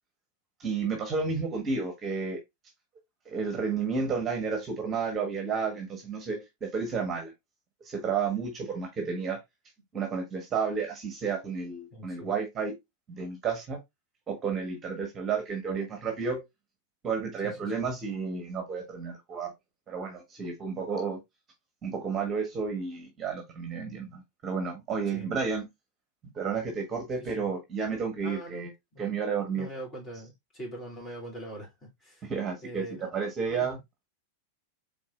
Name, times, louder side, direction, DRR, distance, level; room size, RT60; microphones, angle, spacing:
voice 1, 0.6-2.4 3.3-7.3 7.8-9.4 9.9-12.7 13.1-13.8 14.3-16.4 17.0-19.5 19.9-21.2 21.8-25.7 26.3-28.7 29.0-29.7 32.3-32.9 33.1-33.8, right 5 dB, 25° right, 1.3 m, -31 dB
voice 2, 11.9-12.3 17.4-17.9 25.1-25.3 27.2-27.5 28.2-29.1 29.5-32.3 32.6-33.2 33.5-33.7, right 1 dB, 20° left, 2.9 m, -43 dB
4.6 x 3.9 x 2.5 m
figure-of-eight pair, 95°, 0 cm